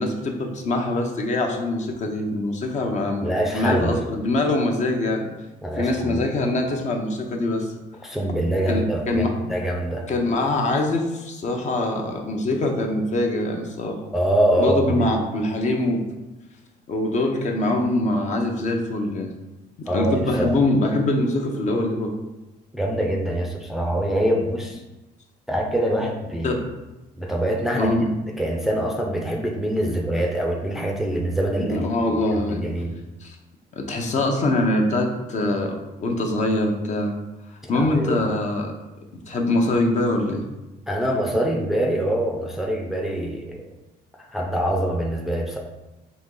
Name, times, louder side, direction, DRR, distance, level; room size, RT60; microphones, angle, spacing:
voice 1, 0.0-5.3 5.8-7.7 8.7-9.3 10.1-14.0 14.6-16.1 16.9-19.3 19.8-22.2 26.4-26.6 27.7-28.1 31.6-32.7 33.2-33.4 33.8-37.1 37.5-38.7 39.3-40.4, left 2 dB, 45° left, 2 dB, 0.7 m, -23 dB
voice 2, 3.2-4.0 5.6-6.2 8.0-10.1 14.1-15.1 19.9-20.5 22.7-24.8 25.5-26.6 27.2-27.9 28.4-31.9 32.4-32.9 37.7-38.2 40.9-43.6 44.3-45.6, right 1 dB, ahead, -1 dB, 0.5 m, -24 dB
4.1 x 2.9 x 3.8 m, 1.0 s
cardioid pair, 110°, 17 cm